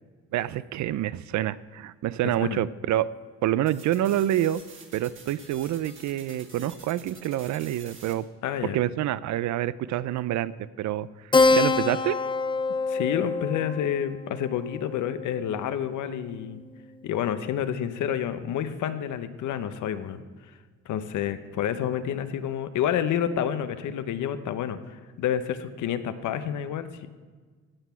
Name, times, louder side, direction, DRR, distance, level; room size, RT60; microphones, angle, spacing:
voice 1, 0.3-3.1 3.4-4.6 4.9-8.3 8.7-10.5 10.8-11.1 11.5-12.2, right 13 dB, 70° right, 18 dB, 0.5 m, -27 dB
sound 1, 3.7-8.1, right 4 dB, 40° right, 1.9 m, -48 dB
voice 2, 8.4-8.8 12.9-16.6 17.0-20.2 20.9-27.1, left 9 dB, 75° left, 11 dB, 0.8 m, -29 dB
Keyboard (musical), 11.3-16.3, left 3 dB, 15° left, 0.5 m, -26 dB
15.5 x 6.1 x 5.6 m, 1.5 s
cardioid pair, 90°, 30 cm